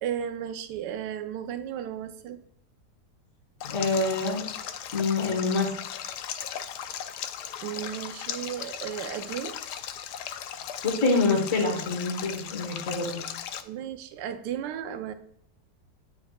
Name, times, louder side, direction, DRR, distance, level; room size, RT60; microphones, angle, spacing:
voice 1, 0.0-2.4 7.6-9.6 13.6-15.1, right 9 dB, 80° right, 9 dB, 1.2 m, -34 dB
Stream, 3.6-13.6, left 9 dB, 75° left, 1.1 m, -37 dB
voice 2, 3.6-4.5 4.9-5.7 10.8-13.2, left 3 dB, 50° left, -1 dB, 1.5 m, -26 dB
9.4 x 4.8 x 2.3 m, 0.69 s
omnidirectional pair, 1.8 m